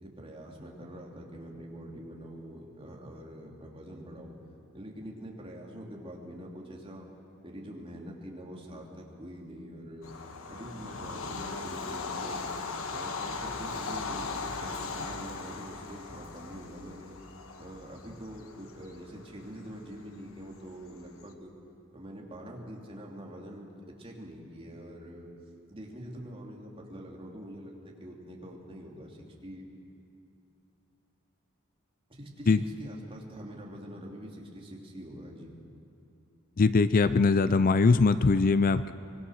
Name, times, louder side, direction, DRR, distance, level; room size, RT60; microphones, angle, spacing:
voice 1, 0.0-4.3 4.7-7.1 7.4-10.1 10.5-12.4 12.9-17.2 17.6-21.5 21.9-23.7 24.0-25.3 25.7-29.7 32.1-35.5, equal, 25° right, -1 dB, 2.8 m, -44 dB
Bird vocalization bird call bird song / Train, 10.0-21.2, left 4 dB, 80° left, 1.4 m, -39 dB
voice 2, 36.6-38.9, left 4 dB, 40° left, 13 dB, 0.4 m, -22 dB
24.5 x 21.5 x 6.4 m, 2.7 s
head